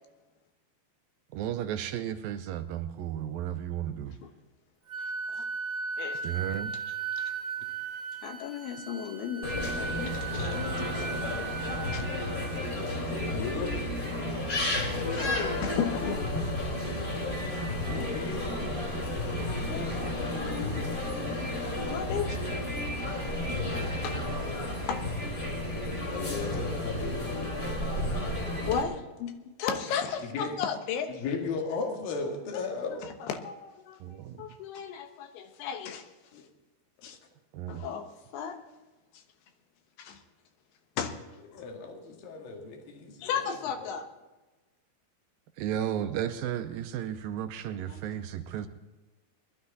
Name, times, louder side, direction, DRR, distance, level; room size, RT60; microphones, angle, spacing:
voice 1, 1.3-4.2 6.2-6.8 18.9-19.0 34.0-34.4 37.5-37.9 45.6-48.7, right 10 dB, 80° right, 9 dB, 2.3 m, -34 dB
Wind instrument woodwind instrument, 4.9-12.6, right 5 dB, 55° right, 0.8 m, -37 dB
voice 2, 6.0-6.4 6.7-7.3 8.2-11.2 11.9-12.1 12.9-13.2 14.7-16.3 19.7-20.9 21.8-22.4 24.0-24.2 24.9-25.0 28.6-29.3 29.6-31.2 32.5-36.1 37.0-37.2 37.7-38.6 39.1-39.2 40.0-40.2 41.0-41.1 41.5-41.6 43.2-44.1 47.9-48.0, left 7 dB, 85° left, 6 dB, 3.2 m, -35 dB
sound 1, 9.4-28.8, left 1 dB, 25° left, 2.8 m, -32 dB
voice 3, 13.0-13.7 17.8-18.4 26.1-27.8 30.3-30.6 31.1-33.0 36.3-36.4 41.5-43.4 43.8-43.9, left 4 dB, 70° left, 2 dB, 3.6 m, -36 dB
21.0 x 12.0 x 4.1 m, 1.1 s
omnidirectional pair, 4.4 m